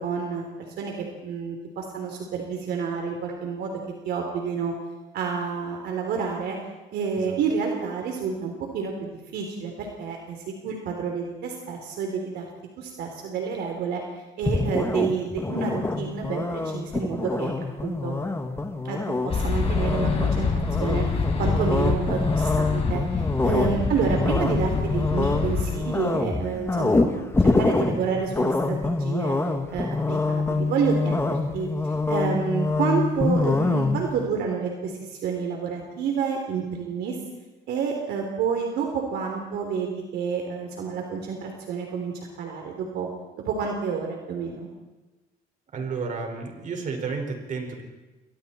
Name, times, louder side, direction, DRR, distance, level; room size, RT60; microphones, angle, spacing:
voice 1, 0.0-3.8 4.0-4.7 5.1-6.6 6.9-12.5 12.8-14.0 14.4-18.2 18.8-19.0 19.2-29.4 29.7-37.2 37.7-43.1 43.4-44.7, right 6 dB, 75° right, 2 dB, 3.5 m, -29 dB
sound 1, 14.4-34.3, left 3 dB, 15° left, 1.9 m, -26 dB
sound 2, 19.3-25.8, left 4 dB, 35° left, 4.8 m, -26 dB
voice 2, 45.7-47.8, right 4 dB, 50° right, 3 dB, 5.4 m, -31 dB
30.0 x 23.0 x 4.4 m, 1.1 s
cardioid pair, 110°, 17 cm